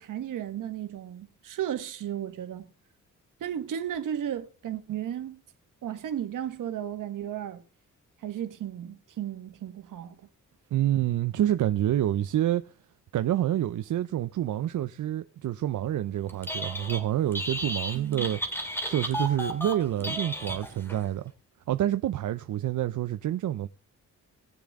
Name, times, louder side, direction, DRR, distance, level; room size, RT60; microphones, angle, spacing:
voice 1, 0.0-2.7 3.4-5.4 5.8-7.6 8.2-10.2 17.9-18.3, right 10 dB, 90° right, 1.5 m, -34 dB
voice 2, 10.7-12.6 13.1-18.4 18.8-21.3 21.7-23.7, right 12 dB, 75° right, 0.6 m, -27 dB
Telephone, 16.3-17.0 17.3-21.0, equal, 5° left, 2.3 m, -33 dB
19.0 x 7.0 x 3.6 m
cardioid pair, 100°, 31 cm